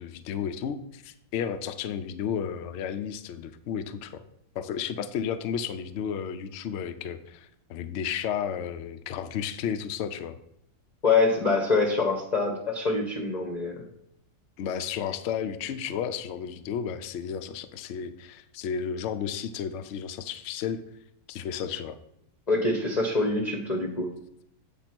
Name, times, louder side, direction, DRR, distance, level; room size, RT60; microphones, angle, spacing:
voice 1, 0.0-4.2 4.5-10.4 14.6-20.8 21.3-22.0, left 8 dB, 65° left, 10 dB, 0.7 m, -33 dB
voice 2, 11.0-13.8 22.5-24.1, left 3 dB, 35° left, 0 dB, 0.8 m, -25 dB
8.2 x 3.7 x 5.9 m, 0.76 s
omnidirectional pair, 1.7 m